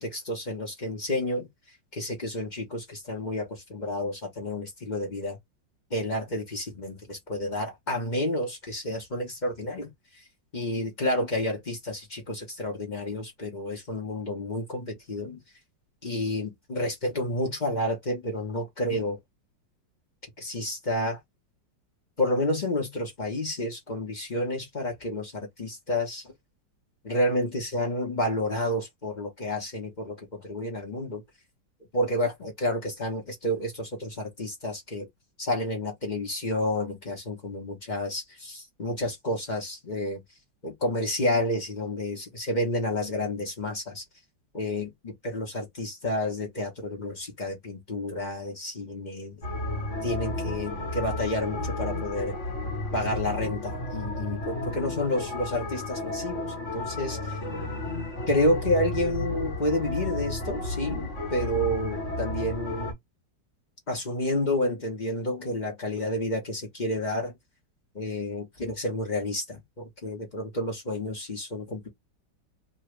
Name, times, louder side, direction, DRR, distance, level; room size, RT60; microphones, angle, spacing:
voice 1, 0.0-1.5 1.9-5.4 5.9-9.9 10.5-15.4 16.0-19.2 20.4-21.2 22.2-26.2 27.0-31.2 31.9-35.1 35.4-40.2 40.6-44.0 44.5-49.4 50.0-52.3 52.9-57.4 58.3-63.0 63.9-67.3 67.9-71.9, left 1 dB, 30° left, 0.9 m, -30 dB
sound 1, 49.4-62.9, left 2 dB, 45° left, 1.3 m, -33 dB
3.1 x 2.4 x 3.1 m
omnidirectional pair, 1.9 m